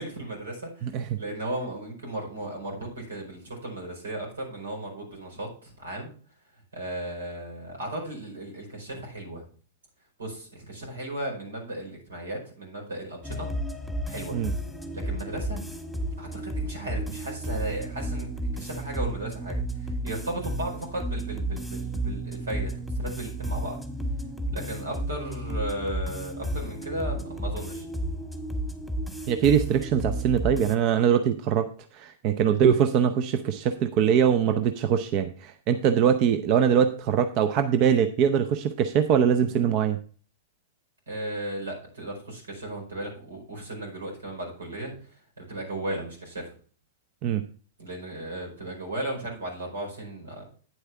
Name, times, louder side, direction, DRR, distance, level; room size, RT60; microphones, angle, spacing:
voice 1, 0.0-6.1 6.7-9.4 10.2-13.5 14.1-14.4 14.9-15.6 16.2-23.8 24.5-27.8 41.1-44.9 45.4-46.4 47.8-50.4, right 1 dB, 90° right, 1 dB, 4.8 m, -35 dB
voice 2, 0.8-1.2 14.3-14.5 29.3-31.7 31.9-40.0 47.2-47.4, right 8 dB, 45° right, 9 dB, 0.6 m, -22 dB
sound 1, 13.2-30.8, right 1 dB, ahead, 1.4 m, -32 dB
9.3 x 8.0 x 3.4 m, 0.40 s
hypercardioid pair, 115°, 0 cm